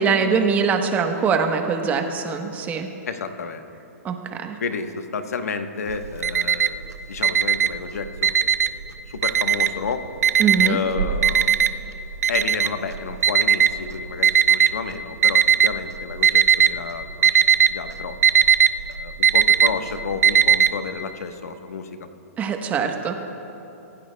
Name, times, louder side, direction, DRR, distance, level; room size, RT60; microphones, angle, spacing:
voice 1, 0.0-2.9 4.0-4.6 10.4-10.8 22.4-23.2, right 5 dB, 20° right, 5 dB, 1.0 m, -22 dB
voice 2, 3.1-3.6 4.6-8.4 9.1-10.1 10.6-11.5 12.3-18.1 18.9-22.0, left 5 dB, 80° left, 7 dB, 1.1 m, -31 dB
Alarm, 5.9-6.9 7.2-8.8 9.2-9.9 10.2-14.7 15.2-15.8 16.1-16.8 17.0-20.7, right 8 dB, 90° right, 0.6 m, -17 dB
24.5 x 15.5 x 2.2 m, 3.0 s
hypercardioid pair, 140°, 8 cm